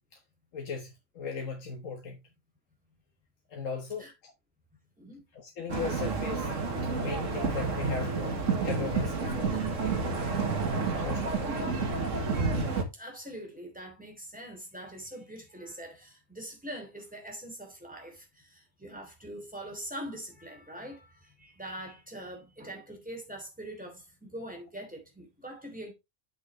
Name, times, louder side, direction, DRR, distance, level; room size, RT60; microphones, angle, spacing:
voice 1, 0.5-2.2 3.5-4.3 5.3-6.5 6.9-8.4 8.6-9.7 11.0-11.8, left 5 dB, 85° left, 1.6 m, -37 dB
sound 1, 5.7-12.8, right 4 dB, 85° right, 1.9 m, -30 dB
voice 2, 11.3-11.9 12.9-25.9, equal, 5° right, 3.0 m, -43 dB
8.6 x 6.3 x 3.2 m
omnidirectional pair, 1.3 m